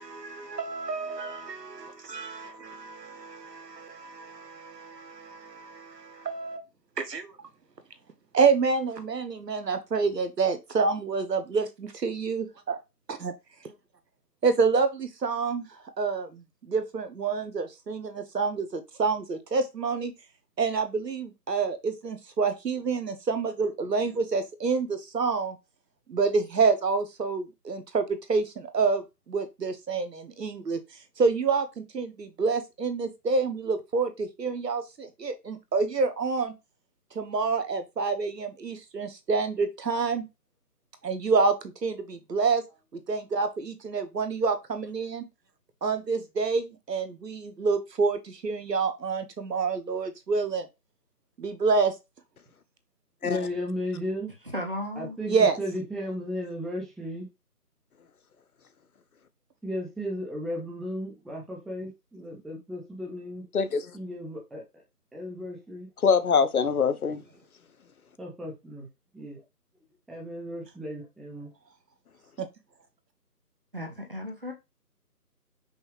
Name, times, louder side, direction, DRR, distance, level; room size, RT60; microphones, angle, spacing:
voice 1, 0.0-6.6 7.0-7.4 8.3-12.8 13.1-13.3 13.6-13.7 14.4-20.1 20.6-25.6 26.1-36.5 37.1-40.2 41.0-42.6 42.9-45.2 45.8-50.7 51.4-52.0 55.3-55.6 72.4-72.5, right 4 dB, 85° right, 1.0 m, -28 dB
voice 2, 53.2-54.3 55.0-57.3 59.6-63.4 63.9-64.6 65.1-65.9 68.2-68.9 69.1-69.4 70.1-71.5, equal, ahead, 0.5 m, -35 dB
voice 3, 54.5-55.2 73.7-74.5, left 1 dB, 35° right, 0.7 m, -34 dB
voice 4, 63.5-63.9 66.0-67.2, left 6 dB, 65° left, 0.5 m, -23 dB
5.4 x 2.4 x 3.1 m
figure-of-eight pair, 170°, 48 cm